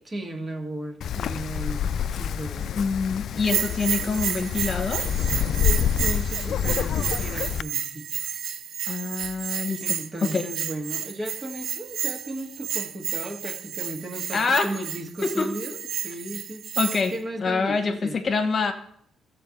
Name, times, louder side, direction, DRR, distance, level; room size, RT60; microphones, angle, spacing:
voice 1, 0.1-2.7 5.6-8.1 9.8-16.7 17.1-18.2, right 1 dB, 30° right, 3 dB, 1.8 m, -35 dB
Wind, 1.0-7.6, left 9 dB, 65° left, 0.3 m, -27 dB
voice 2, 2.7-5.1 8.9-9.8 10.2-10.5 14.3-14.7 15.2-15.5 16.8-17.1 17.4-18.7, left 4 dB, 45° left, 6 dB, 1.2 m, -25 dB
Bell, 3.4-17.2, right 9 dB, 70° right, 0.6 m, -31 dB
13.5 x 4.5 x 7.9 m, 0.68 s
cardioid pair, 90°, 0 cm